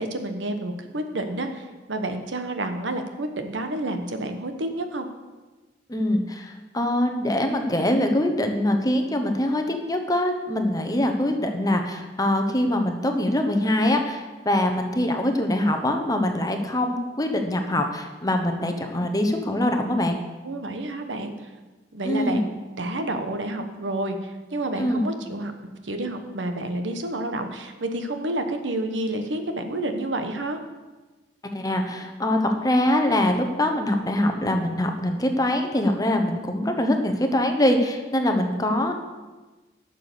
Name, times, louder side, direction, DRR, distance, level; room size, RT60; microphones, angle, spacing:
voice 1, 0.0-5.1 20.4-21.3 21.9-25.5 25.8-30.6, right 1 dB, 85° right, 7 dB, 1.1 m, -29 dB
voice 2, 5.9-20.2 22.0-22.4 24.8-25.0 31.5-38.9, left 1 dB, 20° left, 5 dB, 1.0 m, -23 dB
11.0 x 6.8 x 6.8 m, 1.2 s
head